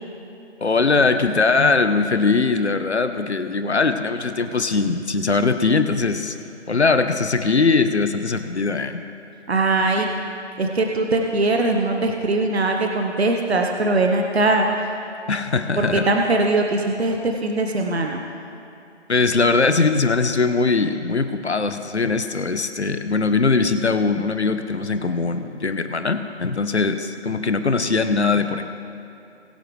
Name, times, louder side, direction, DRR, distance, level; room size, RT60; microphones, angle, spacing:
voice 1, 0.6-6.4 6.7-9.0 15.3-16.1 19.1-28.7, left 4 dB, 65° left, 9 dB, 1.1 m, -21 dB
voice 2, 9.5-10.1 10.6-14.7 15.8-18.2, right 2 dB, 60° right, 2 dB, 1.2 m, -21 dB
21.5 x 8.1 x 3.3 m, 2.8 s
figure-of-eight pair, 170°, 36 cm